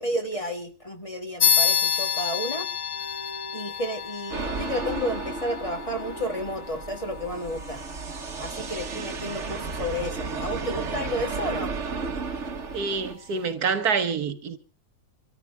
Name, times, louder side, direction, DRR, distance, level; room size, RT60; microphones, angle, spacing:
voice 1, 0.0-2.7 3.5-7.8 8.4-11.7, equal, 20° left, 1.6 m, -31 dB
sound 1, 1.4-11.4, left 8 dB, 75° left, 1.7 m, -30 dB
Bowed string instrument, 2.7-7.2, right 3 dB, 50° left, 8.4 m, -48 dB
sound 2, 4.3-13.1, right 4 dB, 50° right, 1.6 m, -33 dB
voice 2, 12.7-14.6, right 5 dB, 70° right, 1.7 m, -26 dB
26.5 x 13.5 x 3.4 m
omnidirectional pair, 1.7 m